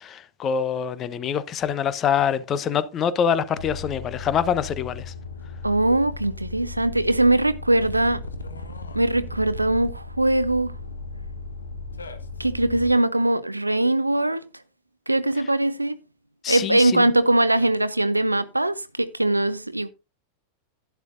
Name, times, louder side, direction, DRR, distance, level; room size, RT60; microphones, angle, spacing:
voice 1, 0.0-5.1 16.4-17.1, left 8 dB, 30° left, 0.9 m, -25 dB
sound 1, 3.6-12.9, left 3 dB, 75° left, 1.2 m, -36 dB
voice 2, 5.6-8.2 8.9-10.7 12.4-14.4 15.1-16.0 16.5-19.9, right 1 dB, 85° right, 0.6 m, -21 dB
11.5 x 10.5 x 2.6 m
figure-of-eight pair, 90°, 0 cm